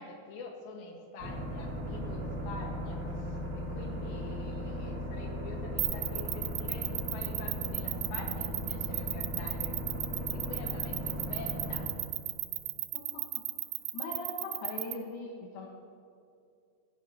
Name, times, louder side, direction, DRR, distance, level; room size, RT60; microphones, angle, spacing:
voice 1, 0.0-9.8 10.2-11.9, left 3 dB, 90° left, 0 dB, 3.7 m, -46 dB
sound 1, 1.2-11.9, equal, 30° right, 2.9 m, -37 dB
sound 2, 5.8-14.9, right 17 dB, 85° right, 2.8 m, -34 dB
voice 2, 12.9-13.4 13.9-15.7, left 2 dB, 70° left, -2 dB, 3.4 m, -40 dB
19.0 x 15.0 x 2.9 m, 2.4 s
omnidirectional pair, 4.8 m